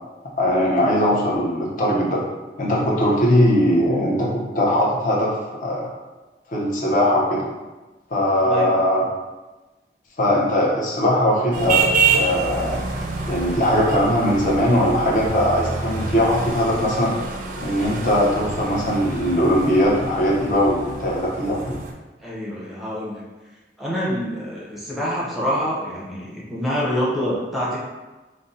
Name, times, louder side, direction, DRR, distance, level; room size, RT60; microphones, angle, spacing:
voice 1, 0.4-2.2 2.6-5.8 6.5-7.4 8.1-9.0 10.2-11.8 12.1-12.8 13.3-17.2 17.6-21.7, equal, 45° left, -3 dB, 0.6 m, -20 dB
sound 1, 11.5-21.9, right 4 dB, 45° right, 0.3 m, -27 dB
voice 2, 22.2-23.2 23.8-27.8, equal, ahead, -7 dB, 0.6 m, -26 dB
2.6 x 2.0 x 3.8 m, 1.2 s
head